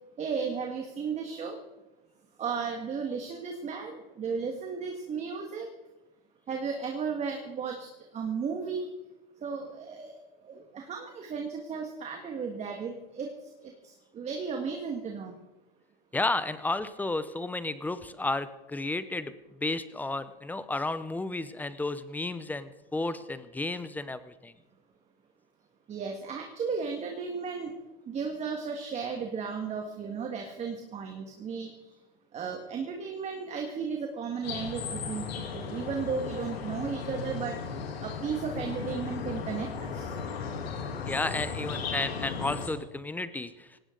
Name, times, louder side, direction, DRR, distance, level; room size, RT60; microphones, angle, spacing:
voice 1, 0.2-1.6 2.4-5.7 6.5-8.9 9.4-13.3 13.6-15.4 25.9-27.8 28.1-31.7 32.3-37.6 38.0-40.2, right 5 dB, 20° right, 3 dB, 1.8 m, -35 dB
voice 2, 16.1-19.3 19.6-24.5 41.1-43.7, left 2 dB, 5° left, 13 dB, 0.7 m, -32 dB
sound 1, 34.4-42.7, left 5 dB, 90° left, 3.1 m, -36 dB
18.5 x 18.0 x 3.9 m, 1.1 s
hypercardioid pair, 130°, 30 cm